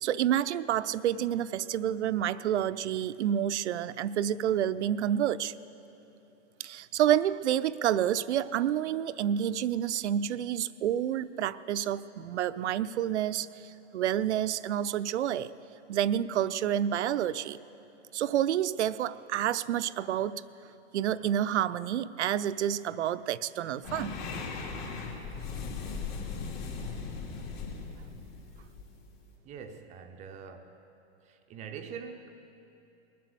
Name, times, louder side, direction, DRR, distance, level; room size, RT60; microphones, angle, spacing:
voice 1, 0.0-5.5 6.6-15.5 15.9-17.6 18.1-20.4 20.9-24.2, right 10 dB, 70° right, 15 dB, 0.5 m, -29 dB
sound 1, 23.8-29.3, left 5 dB, 45° left, 2.8 m, -38 dB
voice 2, 29.4-30.8 31.2-32.3, right 6 dB, 20° right, 6 dB, 0.5 m, -44 dB
20.5 x 7.6 x 6.8 m, 2.9 s
hypercardioid pair, 120°, 36 cm